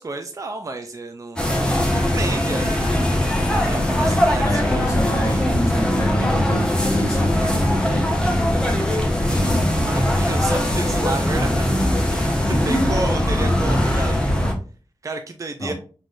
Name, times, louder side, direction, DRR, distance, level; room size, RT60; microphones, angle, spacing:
voice 1, 0.0-2.7 3.2-4.8 9.3-9.5 9.8-11.8 12.1-14.2 15.0-15.7, right 3 dB, 40° right, 6 dB, 0.5 m, -31 dB
sound 1, 1.4-14.5, left 1 dB, 10° left, 1.2 m, -20 dB
sound 2, 2.9-6.2, left 1 dB, 70° left, 1.1 m, -33 dB
voice 2, 4.0-8.1 12.3-13.0 15.6-15.7, left 1 dB, 35° left, -1 dB, 1.6 m, -27 dB
4.9 x 3.9 x 2.5 m, 0.37 s
wide cardioid pair, 105°, 9 cm